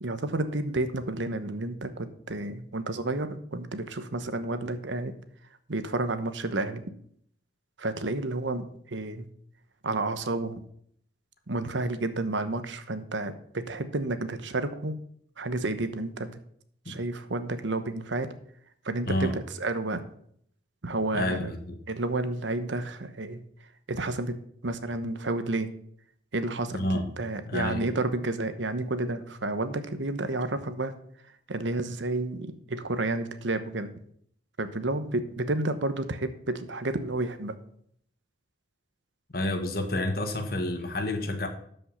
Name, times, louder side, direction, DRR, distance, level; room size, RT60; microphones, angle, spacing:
voice 1, 0.0-5.1 5.7-6.8 7.8-9.3 9.8-10.6 11.5-15.0 15.4-16.4 16.9-18.3 18.8-20.0 20.8-21.5 21.9-23.4 23.9-24.4 24.6-25.7 26.3-30.9 31.5-33.9 34.6-37.6, right 2 dB, 80° right, 11 dB, 1.0 m, -31 dB
voice 2, 19.1-19.4 21.1-21.8 26.7-27.1 27.5-27.8 39.3-41.5, left 1 dB, 50° left, 6 dB, 1.5 m, -29 dB
12.5 x 5.5 x 5.6 m, 0.65 s
head